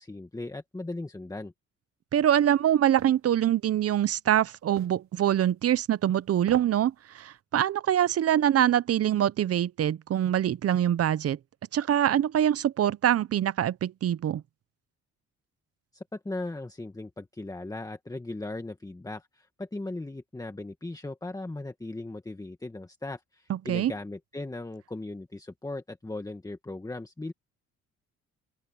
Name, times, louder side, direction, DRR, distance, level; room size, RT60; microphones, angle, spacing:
voice 1, 0.0-1.5 15.9-27.3, left 2 dB, 10° left, 1.7 m, -38 dB
voice 2, 2.1-11.4 11.7-14.4 23.5-23.9, right 11 dB, 50° right, 0.7 m, -24 dB
sound 1, 3.0-3.2 4.8-5.0 6.4-6.8 7.2-7.3, right 10 dB, 70° right, 4.0 m, -39 dB
open air
cardioid pair, 90°, 30 cm